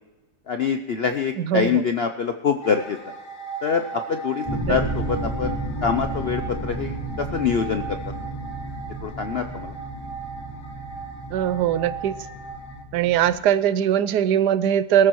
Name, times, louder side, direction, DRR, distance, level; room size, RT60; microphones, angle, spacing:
voice 1, 0.5-3.0 3.6-8.0 9.0-9.7, left 6 dB, 70° left, 7 dB, 0.5 m, -25 dB
voice 2, 1.4-1.8 4.7-4.8 11.3-12.1 12.9-15.1, right 10 dB, 75° right, 15 dB, 1.2 m, -21 dB
sound 1, 2.6-12.8, right 4 dB, 50° left, 1.6 m, -38 dB
sound 2, 4.5-13.4, right 1 dB, 20° left, 3.0 m, -32 dB
22.0 x 13.5 x 3.1 m, 1.2 s
omnidirectional pair, 1.9 m